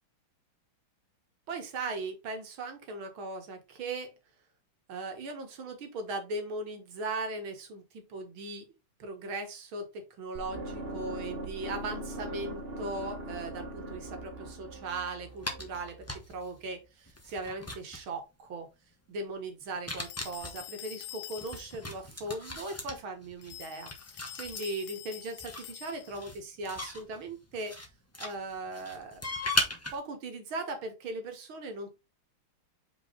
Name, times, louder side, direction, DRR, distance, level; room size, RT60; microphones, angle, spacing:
voice 1, 1.5-4.2 4.9-8.6 9.0-18.7 19.1-27.7 28.2-29.4 29.9-31.9, right 2 dB, 75° right, 5 dB, 2.3 m, -38 dB
sound 1, 10.3-16.4, right 1 dB, 40° right, 1.0 m, -41 dB
sound 2, 15.4-16.5 17.1-18.1 19.7-20.6 21.4-24.6 25.4-27.9 28.1-30.0, left 1 dB, 10° left, 0.7 m, -37 dB
sound 3, 20.0-22.0 23.4-26.3, left 14 dB, 80° left, 0.9 m, -46 dB
5.3 x 4.7 x 3.9 m, 0.24 s
omnidirectional pair, 2.3 m